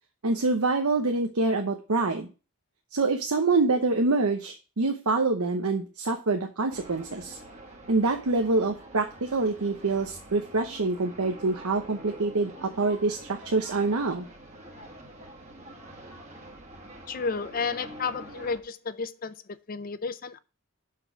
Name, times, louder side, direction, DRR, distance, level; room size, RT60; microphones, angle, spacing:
voice 1, 0.2-2.3 2.9-7.4 7.9-14.3, right 3 dB, 90° right, 0.9 m, -26 dB
sound 1, 6.7-18.6, right 1 dB, 30° right, 1.5 m, -46 dB
voice 2, 17.1-20.4, left 5 dB, 40° left, 0.5 m, -32 dB
7.1 x 4.6 x 5.8 m
head